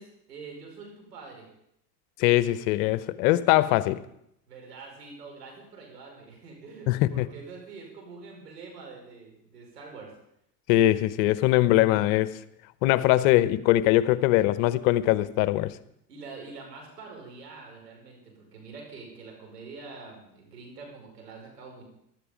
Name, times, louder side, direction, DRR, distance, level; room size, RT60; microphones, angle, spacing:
voice 1, 0.0-1.5 4.5-10.1 16.1-21.8, right 4 dB, 90° right, 5.4 m, -45 dB
voice 2, 2.2-4.0 6.9-7.3 10.7-12.3 12.8-15.7, left 15 dB, 60° left, 0.9 m, -22 dB
16.0 x 12.0 x 5.2 m
hypercardioid pair, 85°, 47 cm